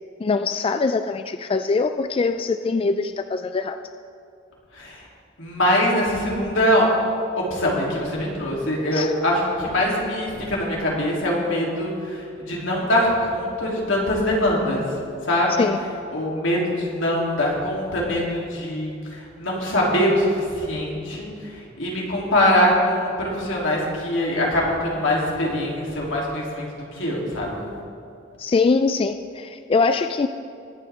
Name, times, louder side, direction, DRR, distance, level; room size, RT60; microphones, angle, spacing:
voice 1, 0.2-3.8 8.9-9.1 15.6-15.8 28.4-30.3, left 4 dB, 30° left, 9 dB, 0.3 m, -22 dB
voice 2, 4.7-5.1 5.4-6.9 7.4-14.8 15.2-15.7 16.1-26.7 26.9-27.7, left 1 dB, 80° left, -4 dB, 3.3 m, -23 dB
22.0 x 8.5 x 3.6 m, 2.5 s
head